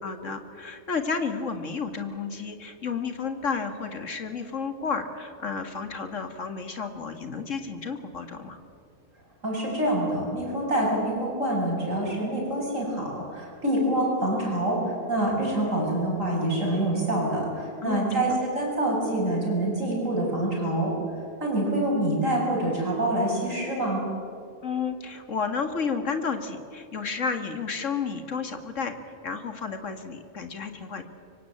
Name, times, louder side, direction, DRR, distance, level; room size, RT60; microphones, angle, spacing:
voice 1, 0.0-8.6 17.8-18.3 24.6-29.0 29.2-31.0, left 5 dB, 55° left, 7 dB, 2.2 m, -31 dB
voice 2, 9.4-20.9 21.4-24.0, right 1 dB, 60° right, -3 dB, 8.0 m, -26 dB
25.5 x 23.5 x 8.8 m, 2.5 s
omnidirectional pair, 1.6 m